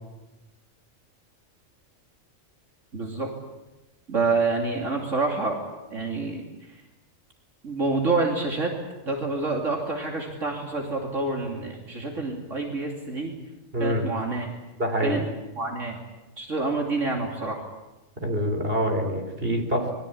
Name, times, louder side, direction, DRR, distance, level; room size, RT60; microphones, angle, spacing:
voice 1, 2.9-3.3 4.1-5.6 5.9-6.4 7.6-8.7 9.0-13.3 13.8-14.5 15.0-15.2 15.6-16.0 16.4-17.6, right 3 dB, 70° right, 1 dB, 3.3 m, -27 dB
voice 2, 13.7-14.1 14.8-15.2 18.2-19.9, equal, 45° right, 4 dB, 4.5 m, -25 dB
26.0 x 22.0 x 8.6 m, 1.0 s
omnidirectional pair, 1.3 m